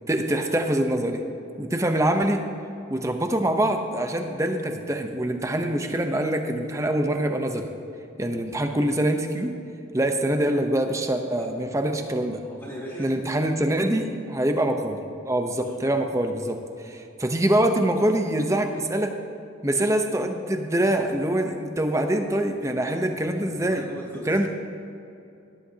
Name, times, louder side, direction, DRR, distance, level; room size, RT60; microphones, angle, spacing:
voice 1, 0.1-1.2 1.6-2.4 2.9-7.7 8.2-9.6 9.9-12.4 13.0-15.0 15.2-19.1 19.6-23.8 24.3-24.5, right 1 dB, 15° right, 5 dB, 0.7 m, -24 dB
voice 2, 12.3-13.2 15.6-15.8 23.1-24.4, right 1 dB, 10° left, -8 dB, 2.3 m, -40 dB
17.5 x 11.0 x 2.8 m, 2.7 s
head